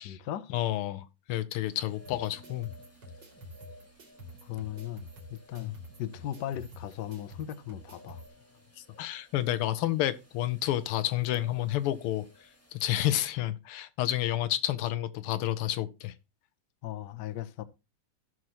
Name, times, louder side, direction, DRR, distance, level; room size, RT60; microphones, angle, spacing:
voice 1, 0.0-0.5 4.4-8.2 13.0-13.2 16.8-17.7, left 12 dB, 65° left, 1.2 m, -38 dB
voice 2, 0.5-2.7 5.6-5.7 9.0-12.3 12.7-16.1, left 13 dB, 90° left, 1.7 m, -30 dB
sound 1, 1.6-13.0, left 1 dB, 5° left, 1.7 m, -56 dB
sound 2, 2.1-8.3, equal, 50° right, 3.2 m, -49 dB
15.5 x 6.2 x 2.9 m
omnidirectional pair, 2.4 m